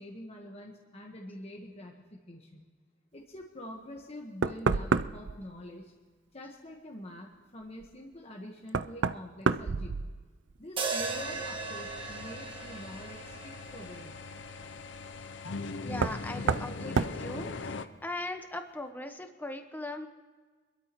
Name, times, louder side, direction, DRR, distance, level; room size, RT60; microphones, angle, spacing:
voice 1, 0.0-2.6 3.1-5.9 6.3-10.1 10.6-14.2, equal, 35° left, -1 dB, 1.3 m, -46 dB
Knock, 4.0-4.1 4.4-5.4 7.8-7.9 8.7-10.5 10.9-11.4 13.1-13.2 15.9-16.2 16.5-16.7 17.0-17.2, right 5 dB, 65° right, 0.4 m, -29 dB
sound 1, 10.8-15.0, right 4 dB, 30° right, 1.5 m, -38 dB
sound 2, 11.0-17.9, left 3 dB, 65° left, 0.7 m, -41 dB
voice 2, 15.8-17.7 18.0-20.1, left 1 dB, 10° left, 6 dB, 1.0 m, -39 dB
26.0 x 12.5 x 3.1 m, 1.4 s
head